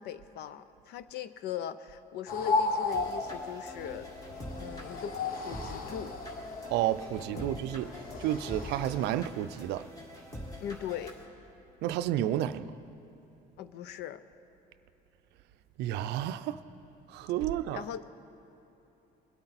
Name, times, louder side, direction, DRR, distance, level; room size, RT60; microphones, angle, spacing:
voice 1, 0.0-4.2 4.6-6.1 7.1-7.6 10.6-11.2 13.6-14.2 17.7-18.1, left 9 dB, 80° left, 0.6 m, -40 dB
sound 1, 2.3-9.2, left 3 dB, 55° left, 1.0 m, -35 dB
sound 2, 2.9-11.3, equal, 20° left, 1.9 m, -45 dB
voice 2, 6.7-7.9 8.2-9.8 11.8-12.7 15.8-16.6 17.1-17.8, right 12 dB, 85° right, 0.5 m, -31 dB
22.0 x 8.7 x 4.1 m
cardioid pair, 110°, 17 cm